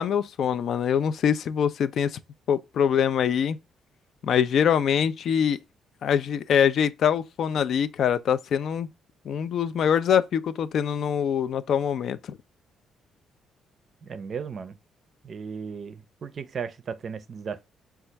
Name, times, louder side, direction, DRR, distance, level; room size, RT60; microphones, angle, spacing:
voice 1, 0.0-2.2 2.5-3.6 4.2-5.6 6.0-8.9 9.3-12.4, left 8 dB, 65° left, 0.3 m, -24 dB
voice 2, 14.0-14.8 15.2-17.6, right 6 dB, 50° right, 0.4 m, -35 dB
4.0 x 2.3 x 4.4 m
cardioid pair, 90°, 0 cm